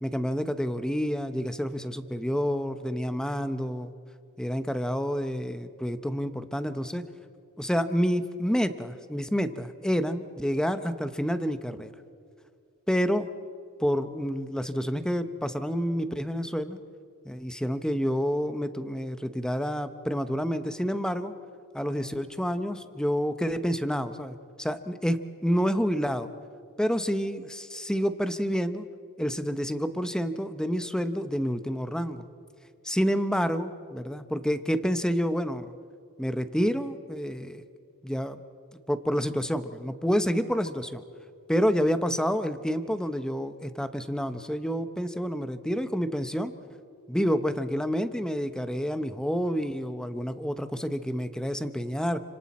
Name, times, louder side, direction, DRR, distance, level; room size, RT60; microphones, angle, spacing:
voice 1, 0.0-3.9 4.4-7.0 7.6-11.9 12.9-13.3 13.8-16.8 17.2-21.3 21.7-26.3 26.8-28.9 29.2-32.2 32.8-35.7 36.2-37.6 38.0-38.4 38.9-41.0 41.5-46.5 47.1-52.2, equal, 5° left, 10 dB, 0.8 m, -28 dB
29.5 x 26.0 x 4.2 m, 2.3 s
head